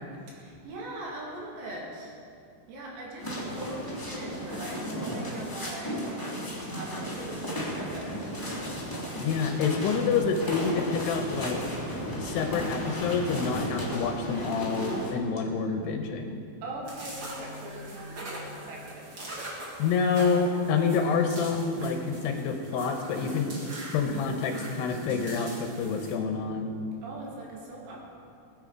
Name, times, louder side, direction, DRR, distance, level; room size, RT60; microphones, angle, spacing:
voice 1, 0.3-2.1 2.7-6.0 6.7-8.4 16.6-19.4 27.0-28.0, right 2 dB, 75° right, -3 dB, 4.7 m, -41 dB
sound 1, 3.2-15.1, equal, 10° left, 0.9 m, -34 dB
voice 2, 9.2-11.6 12.2-16.4 19.8-23.5 23.9-26.7, left 5 dB, 75° left, 5 dB, 2.9 m, -27 dB
sound 2, 16.8-26.1, right 1 dB, 35° right, 2.1 m, -41 dB
21.0 x 9.6 x 4.9 m, 2.5 s
omnidirectional pair, 5.0 m